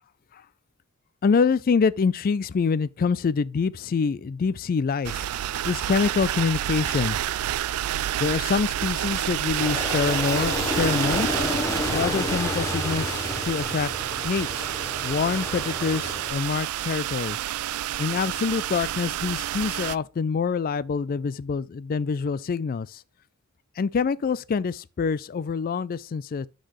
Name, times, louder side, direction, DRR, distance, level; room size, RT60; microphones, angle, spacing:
voice 1, 1.2-5.3 5.7-7.2 8.2-11.4 11.9-13.9 14.2-14.6 15.0-17.4 18.0-23.0 23.8-26.5, left 5 dB, 40° left, 0.3 m, -26 dB
sound 1, 5.0-20.0, right 12 dB, 80° right, 0.3 m, -29 dB
Aircraft, 9.6-16.3, left 1 dB, 15° left, 1.1 m, -30 dB
11.5 x 4.0 x 3.1 m
head